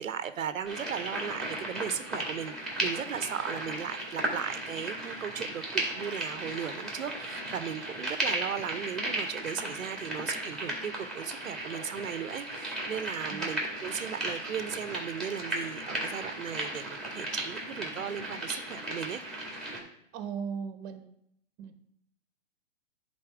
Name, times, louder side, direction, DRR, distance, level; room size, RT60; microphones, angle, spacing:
voice 1, 0.0-19.2, right 8 dB, 85° right, 12 dB, 0.7 m, -37 dB
sound 1, 0.6-19.8, right 1 dB, ahead, 2.0 m, -35 dB
voice 2, 20.1-21.1 21.6-21.8, right 6 dB, 30° right, 9 dB, 1.0 m, -37 dB
9.8 x 4.1 x 4.8 m, 0.74 s
hypercardioid pair, 125°, 39 cm